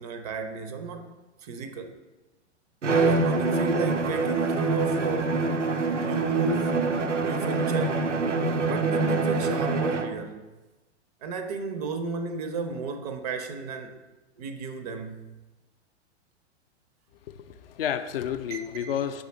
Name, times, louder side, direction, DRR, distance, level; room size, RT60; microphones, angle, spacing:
voice 1, 0.0-2.0 2.9-5.4 6.0-6.9 7.2-8.1 8.7-10.5 11.2-14.0 14.4-15.3 18.5-18.9, right 4 dB, 35° right, 0.4 m, -33 dB
Bowed string instrument, 2.8-10.2, right 3 dB, 90° right, 0.5 m, -25 dB
voice 2, 17.2-19.2, left 9 dB, 55° left, 0.4 m, -31 dB
5.2 x 3.5 x 5.0 m
figure-of-eight pair, 95°, 35 cm